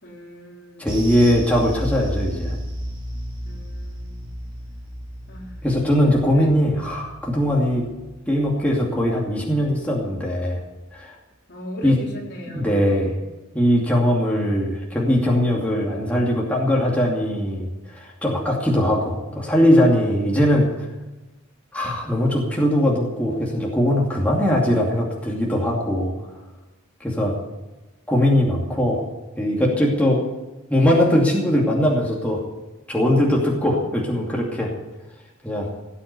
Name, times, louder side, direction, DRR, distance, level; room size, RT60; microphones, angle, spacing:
voice 1, 0.0-0.9 3.4-4.3 5.3-5.6 6.3-6.8 11.5-13.2, equal, 55° left, -2 dB, 4.1 m, -38 dB
voice 2, 0.8-2.6 5.6-7.8 8.3-10.6 10.9-11.1 11.8-11.9 12.5-13.1 13.5-20.9 21.7-26.1 27.0-27.3 28.1-29.0 29.4-30.2 30.7-32.4 32.9-34.7 35.4-35.7, equal, 5° left, -3 dB, 2.5 m, -20 dB
sound 1, 0.9-9.5 9.8-10.0 10.4-10.5, equal, 20° right, 4.1 m, -33 dB
17.5 x 8.5 x 8.3 m, 1.1 s
head